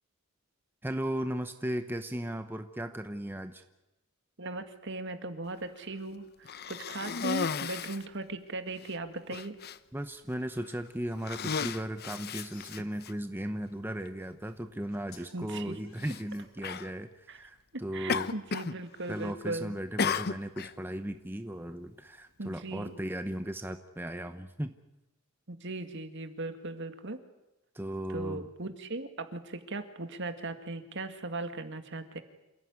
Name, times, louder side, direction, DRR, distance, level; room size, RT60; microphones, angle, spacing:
voice 1, 0.8-3.6 9.9-18.3 19.1-24.8 27.7-28.5, right 1 dB, 10° right, 8 dB, 0.9 m, -36 dB
voice 2, 4.4-9.5 15.3-15.8 17.3-17.4 17.7-19.8 22.4-23.0 25.5-27.2 28.1-32.2, right 2 dB, 55° right, 8 dB, 2.0 m, -38 dB
Cough, 6.4-8.1 8.8-8.9 9.3-9.8 10.5-10.8 11.2-13.1 14.1-14.2 16.0-16.2 16.6-16.9 18.1-18.8 19.0-19.5 20.0-20.7, left 5 dB, 50° left, 0.8 m, -34 dB
sound 1, 12.0-13.1 14.3-14.4 14.9-15.3 15.8-16.9, left 7 dB, 70° left, 3.4 m, -57 dB
27.5 x 16.0 x 9.7 m, 0.98 s
head